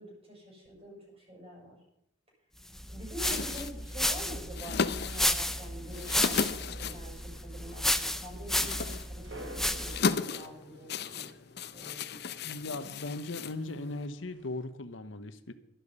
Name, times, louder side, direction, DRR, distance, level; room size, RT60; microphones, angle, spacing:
voice 1, 0.0-1.8 2.9-11.3 11.7-12.4, equal, 30° right, -3 dB, 6.8 m, -46 dB
sound 1, 2.7-10.1, left 1 dB, ahead, 0.5 m, -32 dB
sound 2, 3.1-14.1, left 5 dB, 55° left, 0.7 m, -36 dB
sound 3, 8.9-14.6, right 1 dB, 70° right, 3.2 m, -51 dB
voice 2, 12.4-15.5, left 2 dB, 80° left, 11 dB, 1.1 m, -38 dB
12.0 x 12.0 x 5.5 m, 0.76 s
head